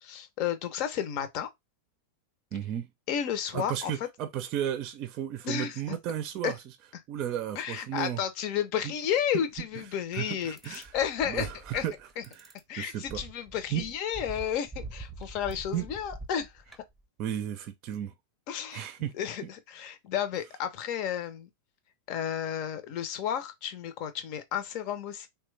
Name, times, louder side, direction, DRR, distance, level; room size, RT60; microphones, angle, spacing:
voice 1, 0.0-1.5 3.1-3.9 5.4-6.0 6.4-6.5 7.6-11.5 11.7-11.8 12.7-16.6 18.5-18.8 19.2-21.5 22.1-25.3, left 9 dB, 50° left, 0.7 m, -32 dB
voice 2, 2.5-2.9 3.5-6.7 7.1-8.2 8.8-8.9 10.1-10.9 11.2-11.9 12.3-13.2 13.7-13.8 15.7-15.9 17.2-18.1 18.7-19.1, right 10 dB, 45° right, 0.5 m, -34 dB
sound 1, 9.6-9.8 10.4-12.6 13.1-17.0, right 2 dB, 5° right, 0.8 m, -44 dB
3.0 x 2.2 x 3.2 m
hypercardioid pair, 110°, 0 cm